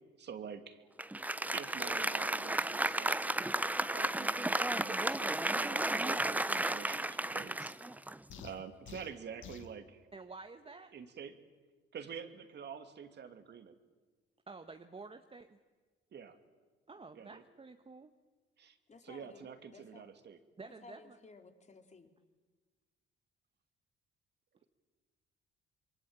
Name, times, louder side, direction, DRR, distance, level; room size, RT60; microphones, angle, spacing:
voice 1, 0.2-0.8 1.5-3.5 3.9-7.7 8.4-10.0 10.9-11.3 11.9-13.7 16.1-16.4 17.1-17.4 18.6-18.8 19.0-20.4, right 7 dB, 55° right, 8 dB, 2.7 m, -47 dB
Applause, 1.0-8.6, right 1 dB, 5° right, 0.7 m, -33 dB
sound 1, 8.3-9.8, left 9 dB, 70° left, 1.7 m, -50 dB
voice 2, 10.1-10.9 14.5-15.6 16.9-18.1 20.6-21.2, right 3 dB, 25° right, 7 dB, 1.5 m, -50 dB
voice 3, 18.9-20.1 20.8-22.1, left 4 dB, 35° left, 6 dB, 3.7 m, -56 dB
27.0 x 22.5 x 9.1 m, 1.4 s
supercardioid pair, 75°, 21 cm